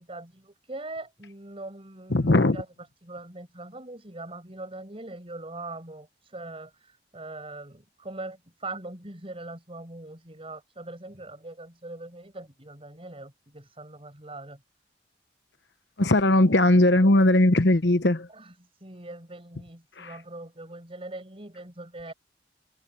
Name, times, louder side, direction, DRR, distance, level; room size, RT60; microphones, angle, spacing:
voice 1, 0.0-2.7 3.0-14.6 18.3-22.1, right 2 dB, 35° right, 6.6 m, -41 dB
voice 2, 2.1-2.6 16.0-18.3 20.0-20.1, left 1 dB, 80° left, 1.1 m, -19 dB
head